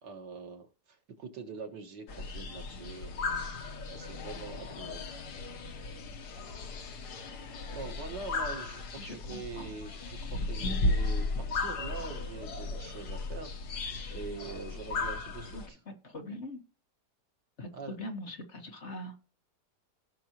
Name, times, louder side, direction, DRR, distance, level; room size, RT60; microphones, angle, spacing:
voice 1, 0.0-3.4 3.9-5.3 7.7-15.8 17.7-18.0, right 4 dB, 85° right, 2.2 m, -44 dB
sound 1, 2.1-15.7, left 2 dB, 70° left, 1.7 m, -35 dB
voice 2, 9.0-9.7 16.0-16.6 17.6-19.1, left 1 dB, 45° left, 1.7 m, -42 dB
17.0 x 6.0 x 3.0 m
omnidirectional pair, 1.8 m